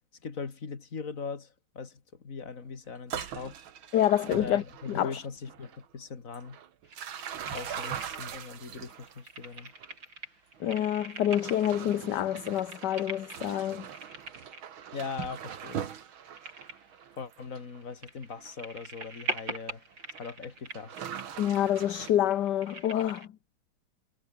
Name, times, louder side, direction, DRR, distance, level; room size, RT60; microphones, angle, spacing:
voice 1, 0.2-3.6 4.4-6.6 7.5-9.7 14.9-15.9 17.2-19.8 20.2-21.1, left 5 dB, 40° left, 2.6 m, -40 dB
sound 1, 3.0-5.2 5.5-5.9 6.3-9.9 10.6-10.7 11.2-17.8 18.4-18.6 19.3-19.4 19.9-20.2 20.7-22.1, right 9 dB, 85° right, 2.3 m, -42 dB
voice 2, 3.9-5.2 10.6-13.9 21.4-23.3, left 11 dB, 60° left, 1.5 m, -27 dB
sound 2, 6.8-8.6 8.8-23.3, right 2 dB, 65° right, 8.7 m, -43 dB
omnidirectional pair, 2.2 m